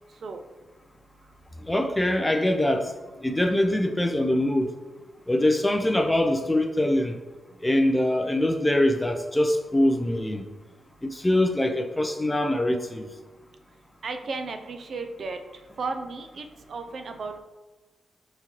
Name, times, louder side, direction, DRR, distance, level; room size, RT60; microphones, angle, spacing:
voice 1, 1.7-2.9 3.2-4.7 5.3-7.2 7.6-10.4 11.0-13.1, left 1 dB, 10° left, 5 dB, 0.4 m, -23 dB
voice 2, 14.0-15.4 15.8-17.4, right 4 dB, 60° right, 6 dB, 0.4 m, -34 dB
4.3 x 3.8 x 2.9 m, 1.2 s
cardioid pair, 100°, 0 cm